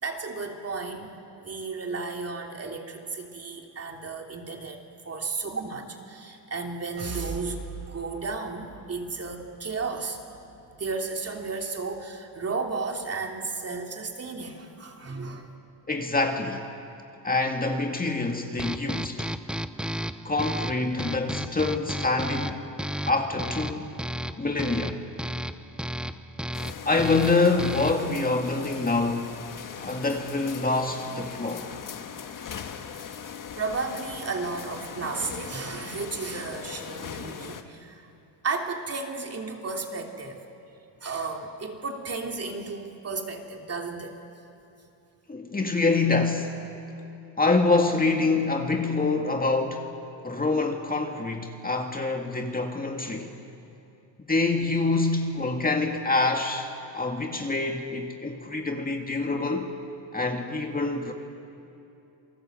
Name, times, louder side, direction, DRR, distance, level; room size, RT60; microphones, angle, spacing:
voice 1, 0.0-10.2 10.8-15.5 33.6-38.0 38.4-40.4 41.0-44.2, right 4 dB, 30° right, 2 dB, 2.9 m, -33 dB
sound 1, 7.0-14.8 15.2-15.3 15.7-15.8, right 6 dB, 60° right, 5.1 m, -44 dB
voice 2, 15.9-16.6 17.2-19.3 20.3-22.6 23.1-23.9 24.4-25.0 26.9-29.4 29.8-31.7 45.3-46.5 47.4-49.8 50.2-53.3 54.3-59.7 60.1-61.1, left 3 dB, 20° left, 3 dB, 2.0 m, -26 dB
sound 2, 18.6-28.1, equal, ahead, 0.7 m, -33 dB
sound 3, 26.5-37.6, left 7 dB, 45° left, 1.6 m, -40 dB
28.5 x 19.0 x 7.8 m, 2.8 s
cardioid pair, 95°, 46 cm